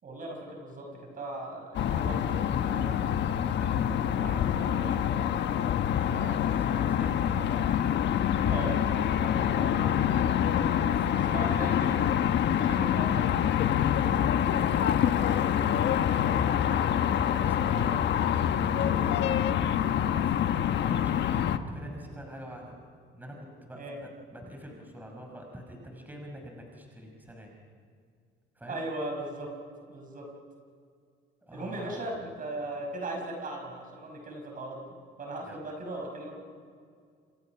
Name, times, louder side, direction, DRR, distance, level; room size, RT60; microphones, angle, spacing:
voice 1, 0.0-5.6 8.5-8.8 11.1-12.0 12.5-13.5 23.8-24.0 28.7-29.5 29.9-30.3 31.5-36.3, right 1 dB, 40° right, 2 dB, 5.7 m, -38 dB
sound 1, 1.7-21.6, left 9 dB, 55° left, 1.3 m, -26 dB
voice 2, 6.1-7.7 9.2-10.6 10.9-11.7 14.3-18.0 18.5-22.8 23.1-27.5 28.6-28.8 31.4-32.1 35.4-35.6, equal, 10° right, 1 dB, 5.7 m, -45 dB
29.0 x 26.0 x 6.0 m, 2.2 s
cardioid pair, 110°, 21 cm